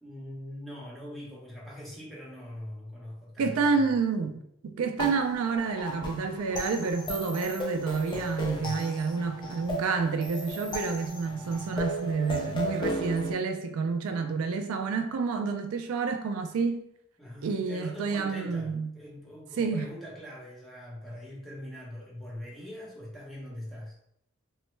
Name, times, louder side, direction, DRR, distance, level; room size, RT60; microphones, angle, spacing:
voice 1, 0.0-4.0 8.5-9.1 17.2-24.0, left 1 dB, ahead, 0.8 m, -42 dB
voice 2, 3.4-4.4 4.6-16.8 17.4-18.9 19.6-19.9, right 4 dB, 75° right, 0.3 m, -29 dB
sound 1, 5.0-13.3, equal, 20° left, 0.4 m, -35 dB
3.0 x 2.1 x 3.1 m
head